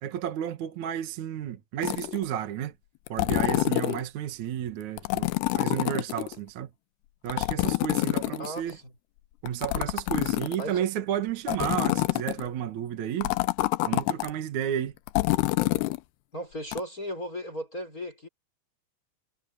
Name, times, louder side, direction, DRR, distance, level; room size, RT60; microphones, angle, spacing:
voice 1, 0.0-2.7 3.1-6.7 7.2-8.8 9.4-13.3 13.8-14.9, right 10 dB, 60° right, 2.4 m, -32 dB
sound 1, 1.8-2.2 3.1-4.0 5.0-6.3 7.3-8.7 9.5-10.8 11.5-12.5 13.2-14.3 15.1-16.0 16.7-16.8, left 20 dB, 90° left, 2.8 m, -27 dB
voice 2, 8.4-8.9 10.6-10.8 16.3-18.3, equal, 20° left, 5.7 m, -36 dB
omnidirectional pair, 4.6 m